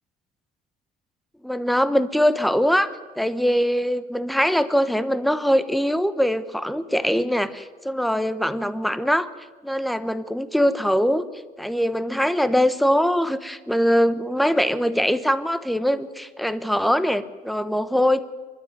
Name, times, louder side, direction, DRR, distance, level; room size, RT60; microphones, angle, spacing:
voice 1, 1.4-9.3 9.6-11.2 11.6-18.2, equal, ahead, 13 dB, 0.9 m, -22 dB
25.0 x 12.0 x 9.5 m, 1.4 s
cardioid pair, 110°, 17 cm